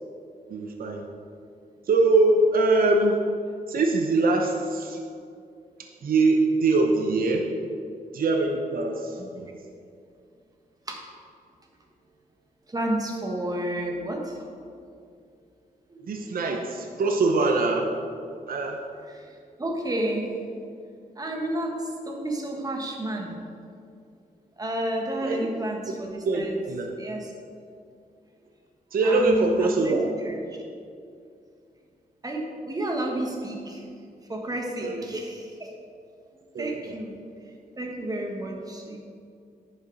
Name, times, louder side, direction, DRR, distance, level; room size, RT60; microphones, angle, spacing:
voice 1, 0.5-1.0 1.9-3.2 3.7-5.0 6.0-7.4 8.1-9.5 16.1-17.9 18.5-18.8 25.2-25.4 26.2-27.0 28.9-30.1 34.8-35.1 36.5-36.9, right 2 dB, 65° right, 2 dB, 0.8 m, -23 dB
voice 2, 12.7-14.4 15.9-16.1 19.1-19.2 19.6-20.3 21.2-23.4 24.6-26.6 27.0-27.3 29.0-30.0 30.2-30.4 32.2-33.8 34.3-35.7 36.6-37.2 37.8-39.0, right 1 dB, 25° right, 1 dB, 1.4 m, -31 dB
10.5 x 7.0 x 4.0 m, 2.4 s
wide cardioid pair, 110°, 16 cm